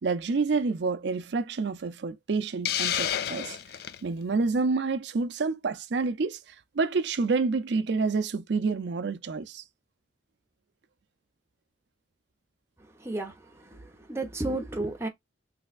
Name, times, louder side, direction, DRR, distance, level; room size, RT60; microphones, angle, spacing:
voice 1, 0.0-3.6 4.0-9.6, right 4 dB, 65° right, 0.5 m, -28 dB
Hiss, 2.6-4.0, left 10 dB, 55° left, 0.3 m, -29 dB
voice 2, 13.0-15.1, right 2 dB, 15° right, 0.8 m, -33 dB
3.4 x 3.1 x 2.3 m
head